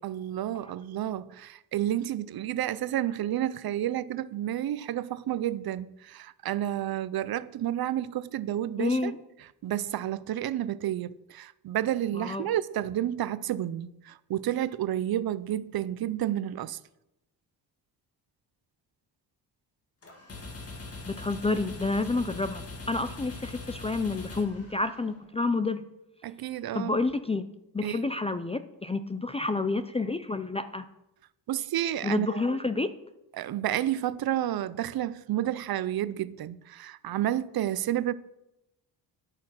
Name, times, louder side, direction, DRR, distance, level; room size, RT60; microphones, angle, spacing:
voice 1, 0.0-9.1 9.6-16.8 26.2-27.0 27.8-28.1 31.5-32.6 33.4-38.1, right 12 dB, 60° right, 0.6 m, -30 dB
voice 2, 8.8-9.2 12.1-12.5 21.1-25.8 26.7-27.5 27.7-30.8 32.0-32.9, left 3 dB, 15° left, 0.3 m, -29 dB
sound 1, 20.0-25.2, left 3 dB, 35° left, 1.9 m, -42 dB
11.0 x 8.7 x 5.9 m
wide cardioid pair, 155°, 43 cm